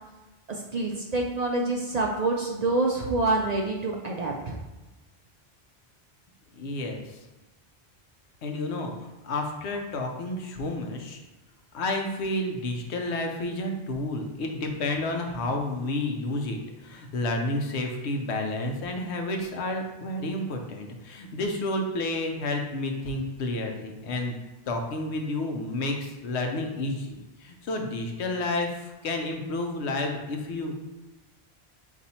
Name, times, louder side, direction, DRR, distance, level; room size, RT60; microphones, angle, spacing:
voice 1, 0.5-4.6, right 2 dB, 50° right, 0 dB, 0.5 m, -27 dB
voice 2, 6.5-7.2 8.4-11.2 11.7-24.4 24.7-30.9, left 2 dB, 90° left, 3 dB, 1.0 m, -30 dB
4.1 x 2.6 x 4.2 m, 1.1 s
omnidirectional pair, 1.1 m